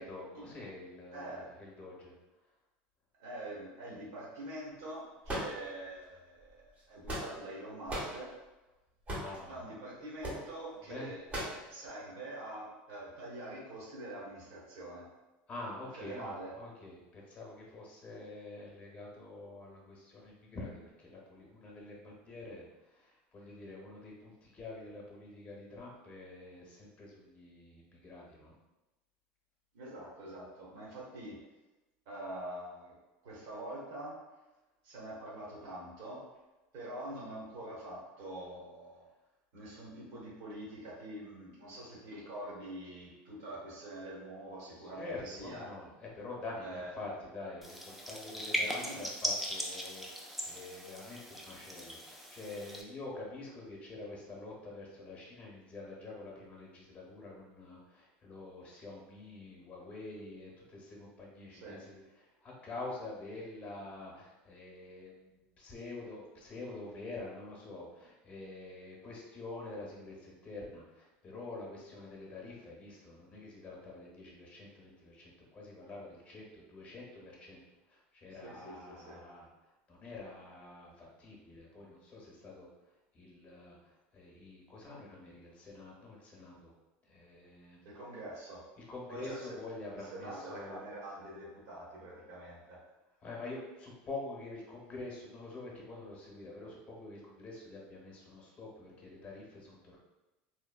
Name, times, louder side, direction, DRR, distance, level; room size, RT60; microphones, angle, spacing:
voice 1, 0.0-2.1 9.1-9.6 10.9-11.1 15.5-22.7 22.9-28.5 44.8-62.0 62.4-77.6 77.9-79.5 79.9-82.7 83.1-83.8 84.1-86.7 87.0-87.8 88.9-90.8 93.2-100.0, left 2 dB, 25° left, -3 dB, 0.8 m, -46 dB
voice 2, 1.1-1.5 3.2-8.3 9.5-15.1 15.9-16.5 29.7-31.4 32.0-32.9 33.2-34.2 34.8-36.2 36.7-39.0 39.5-45.7 46.6-47.1 48.6-49.0 61.5-61.8 78.3-79.2 87.8-88.7 89.1-89.6 89.9-92.8, right 1 dB, 65° right, -5 dB, 1.2 m, -45 dB
sound 1, 5.2-6.0 6.8-7.5 7.9-8.2 9.1-9.4 10.2-10.4 11.3-11.6, equal, 25° right, 0.9 m, -37 dB
sound 2, 47.6-52.8, equal, ahead, 0.4 m, -39 dB
3.0 x 2.0 x 2.3 m, 1.0 s
supercardioid pair, 120°, 6 cm